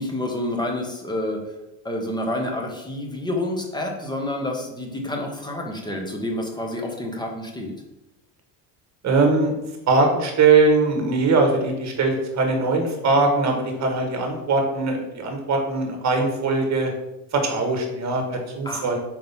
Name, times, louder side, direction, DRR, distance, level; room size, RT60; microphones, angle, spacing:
voice 1, 0.0-1.4 1.8-7.7 18.6-18.9, left 1 dB, 10° left, 2 dB, 0.9 m, -28 dB
voice 2, 9.0-9.6 9.9-16.9 17.3-19.0, right 3 dB, 35° right, 3 dB, 1.3 m, -21 dB
4.6 x 3.8 x 5.4 m, 0.93 s
cardioid pair, 140°, 45 cm